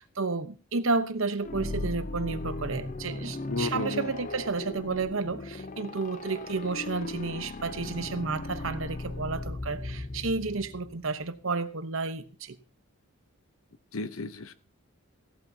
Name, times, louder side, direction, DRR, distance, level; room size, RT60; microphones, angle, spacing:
voice 1, 0.0-12.5, right 3 dB, 65° right, 1.0 m, -31 dB
sound 1, 1.4-11.1, left 2 dB, 35° left, 0.7 m, -37 dB
voice 2, 3.5-4.1 13.9-14.5, left 3 dB, 70° left, 0.9 m, -33 dB
16.5 x 12.0 x 2.9 m
head